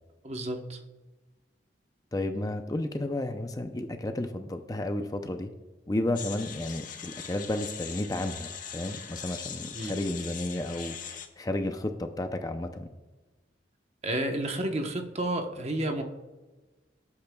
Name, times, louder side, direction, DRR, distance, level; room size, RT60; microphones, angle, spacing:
voice 1, 0.2-0.8 9.7-10.0 14.0-16.0, right 1 dB, 35° right, 4 dB, 1.0 m, -31 dB
voice 2, 2.1-5.5 5.9-12.9, left 1 dB, 20° left, 6 dB, 0.5 m, -32 dB
sound 1, 6.1-11.3, left 7 dB, 45° left, 1.0 m, -41 dB
17.5 x 8.6 x 2.3 m, 1.2 s
head